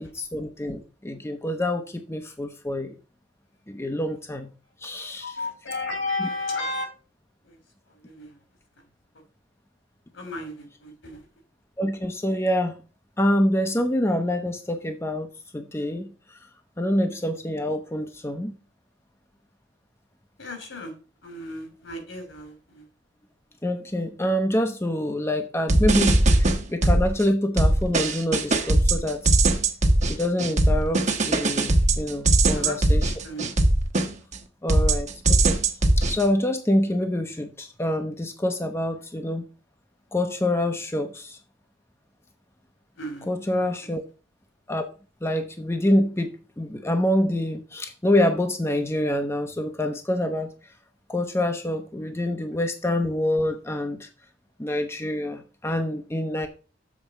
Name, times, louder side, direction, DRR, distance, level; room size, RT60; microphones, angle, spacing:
voice 1, 0.0-2.9 3.7-4.5 4.8-5.4 6.2-6.3 11.8-12.8 13.2-16.4 16.8-18.5 23.6-29.4 30.1-33.1 34.6-35.6 36.0-39.4 40.1-41.4 43.3-44.0 44.7-44.9 45.2-50.5 51.1-54.1 54.6-56.5, left 1 dB, 15° left, 0.7 m, -26 dB
voice 2, 5.2-6.9 7.4-7.6 7.9-8.4 10.1-11.3 20.4-20.9 21.2-22.8 32.5-32.8 33.1-33.4 42.9-43.3, left 2 dB, 70° left, 2.7 m, -33 dB
sound 1, 25.7-27.2 27.6-34.4 34.7-36.2, right 2 dB, 40° right, 1.1 m, -20 dB
7.4 x 4.3 x 6.9 m
head